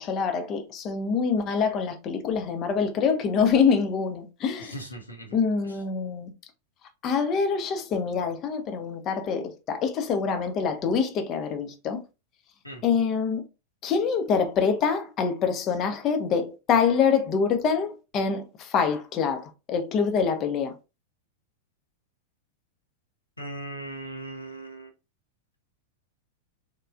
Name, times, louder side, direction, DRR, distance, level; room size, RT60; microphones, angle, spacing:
voice 1, 0.0-4.7 5.3-6.3 7.0-12.0 12.8-13.4 13.8-20.7, left 6 dB, 35° left, 0.5 m, -25 dB
voice 2, 4.6-5.4 12.6-12.8 23.4-24.9, right 1 dB, 85° left, 0.7 m, -38 dB
3.1 x 2.2 x 2.4 m
figure-of-eight pair, 90°, 0 cm